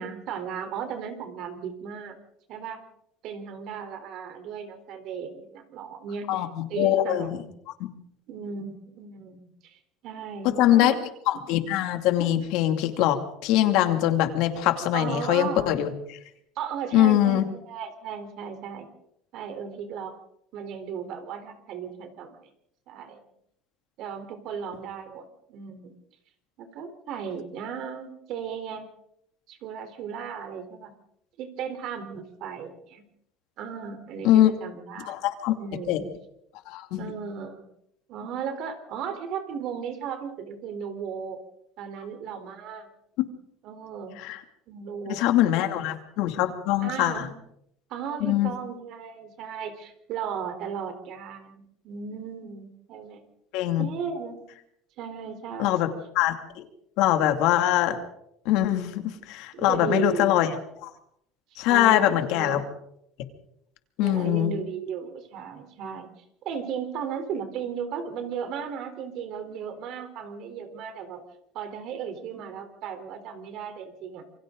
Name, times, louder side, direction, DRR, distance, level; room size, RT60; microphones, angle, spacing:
voice 1, 0.0-2.2 2.5-2.8 3.2-6.4 6.7-7.4 8.3-11.0 11.3-11.5 14.9-15.8 16.6-18.9 19.3-20.2 20.5-22.4 22.9-23.2 24.0-26.0 26.6-28.9 29.5-30.9 31.4-33.0 33.6-35.2 35.6-36.1 36.9-37.7 38.1-41.4 41.8-42.9 43.6-44.2 44.7-45.8 46.8-47.3 47.9-53.2 53.8-54.4 55.0-55.9 59.5-60.3 61.5-62.7 64.0-66.1 66.4-71.2 71.5-74.3, right 7 dB, 55° right, 8 dB, 3.9 m, -36 dB
voice 2, 6.3-7.4 7.8-7.9 10.4-10.9 11.3-15.9 16.9-17.5 34.2-34.5 35.1-35.5 35.9-36.0 36.7-37.1 43.2-43.3 44.2-44.4 45.1-47.3 48.2-48.5 53.5-53.9 55.6-55.9 56.1-56.6 57.0-58.0 58.4-60.9 61.6-62.6 64.0-64.5, left 13 dB, 70° left, 6 dB, 2.6 m, -23 dB
27.5 x 24.0 x 4.0 m, 0.75 s
cardioid pair, 135°, 0 cm